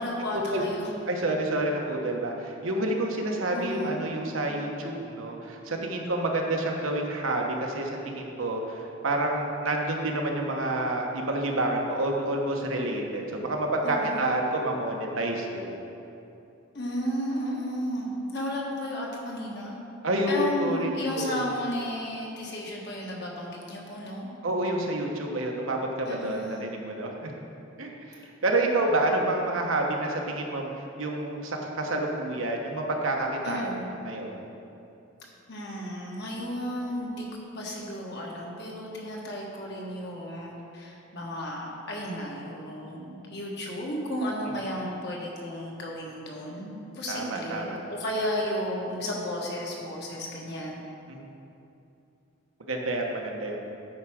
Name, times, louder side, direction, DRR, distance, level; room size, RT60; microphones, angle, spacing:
voice 1, 0.0-0.9 3.5-4.0 13.8-14.3 16.7-19.8 20.3-24.3 26.1-26.7 33.4-33.9 35.5-37.2 37.5-50.8, equal, 55° left, -3 dB, 1.5 m, -33 dB
voice 2, 1.1-15.8 20.0-21.4 24.4-27.3 27.8-33.7 34.0-34.3 47.1-47.8 51.1-51.2 52.7-53.6, right 1 dB, 80° right, 1 dB, 1.1 m, -29 dB
9.4 x 4.7 x 6.3 m, 2.7 s
head